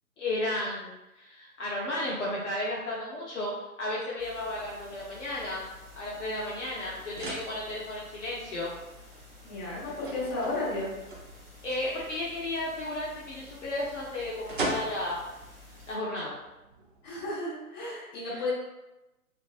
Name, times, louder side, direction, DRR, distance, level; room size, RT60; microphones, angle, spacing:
voice 1, 0.2-3.5 3.8-5.7 6.0-8.7 11.6-15.2 15.9-16.4 18.2-18.4, left 1 dB, 55° left, -6 dB, 0.8 m, -33 dB
sound 1, 4.2-15.9, left 2 dB, 15° right, 1.2 m, -52 dB
sound 2, 4.4-17.3, right 2 dB, 35° right, 0.5 m, -42 dB
voice 2, 9.4-10.9 17.0-18.5, left 2 dB, 20° left, -10 dB, 1.2 m, -33 dB
3.1 x 2.4 x 2.4 m, 0.99 s
figure-of-eight pair, 135°, 44 cm